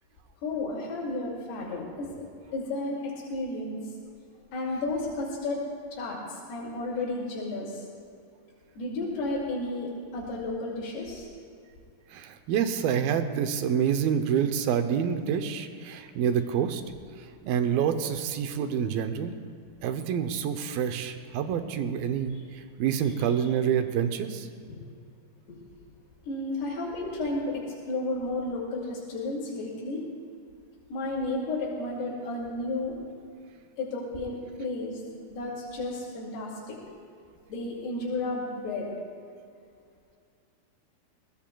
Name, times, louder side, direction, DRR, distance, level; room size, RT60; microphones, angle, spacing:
voice 1, 0.4-2.3 2.5-3.8 4.5-5.6 5.9-7.8 8.8-11.3 24.7-24.8 25.5-25.6 26.3-30.0 30.9-33.0 33.8-35.0 35.3-36.8 37.5-38.9, left 2 dB, 90° left, -5 dB, 4.5 m, -32 dB
voice 2, 12.1-16.8 17.4-19.3 19.8-24.5, right 8 dB, 75° right, 8 dB, 2.4 m, -27 dB
22.0 x 19.0 x 2.3 m, 2.3 s
omnidirectional pair, 4.5 m